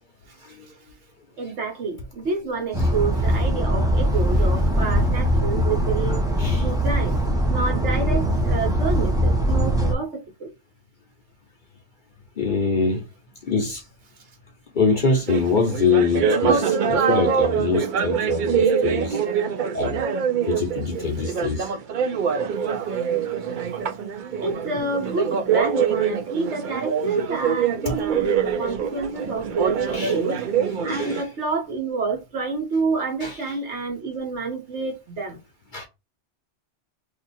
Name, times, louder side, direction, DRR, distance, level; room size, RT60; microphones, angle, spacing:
voice 1, 1.4-6.2 6.6-7.2 7.5-10.5 24.4-30.4 30.8-35.4, right 4 dB, 70° right, 1.4 m, -28 dB
sound 1, 2.7-9.9, equal, 5° right, 0.5 m, -21 dB
voice 2, 12.4-13.0 13.4-13.8 14.7-19.2 19.7-20.0 20.5-21.7 27.9-28.0 29.9-30.1 30.9-31.3 33.2-33.5 35.7-35.9, left 4 dB, 50° left, 0.8 m, -24 dB
sound 2, 15.3-31.2, right 7 dB, 55° right, 0.6 m, -24 dB
2.8 x 2.4 x 4.1 m
omnidirectional pair, 1.2 m